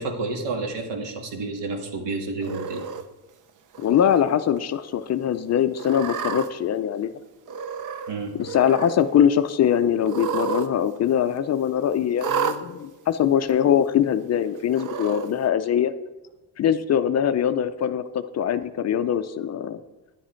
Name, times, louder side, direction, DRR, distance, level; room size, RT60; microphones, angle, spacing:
voice 1, 0.0-2.8 8.1-8.3, right 3 dB, 85° right, 3 dB, 2.0 m, -30 dB
Cat, 2.4-3.0 3.7-4.2 4.6-4.7 5.7-6.5 7.5-8.1 8.4-9.0 10.0-10.7 11.0-11.1 12.2-12.6 13.5-13.6 14.7-15.3, right 6 dB, 50° right, 0.7 m, -30 dB
voice 2, 3.8-7.1 8.4-15.9 16.6-19.8, left 9 dB, 40° left, 11 dB, 0.4 m, -22 dB
10.5 x 10.0 x 4.4 m, 1.1 s
cardioid pair, 175°, 42 cm